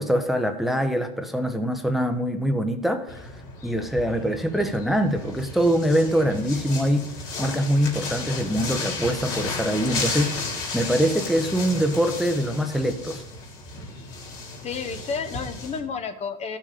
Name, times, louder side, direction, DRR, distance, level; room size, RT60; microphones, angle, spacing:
voice 1, 0.0-3.3 3.6-7.1 7.4-13.2, equal, ahead, 7 dB, 1.0 m, -24 dB
sound 1, 3.1-15.8, left 3 dB, 65° left, 3.6 m, -34 dB
voice 2, 14.6-16.6, left 5 dB, 35° left, 8 dB, 1.1 m, -31 dB
13.5 x 6.3 x 5.0 m, 0.83 s
supercardioid pair, 105°, 19 cm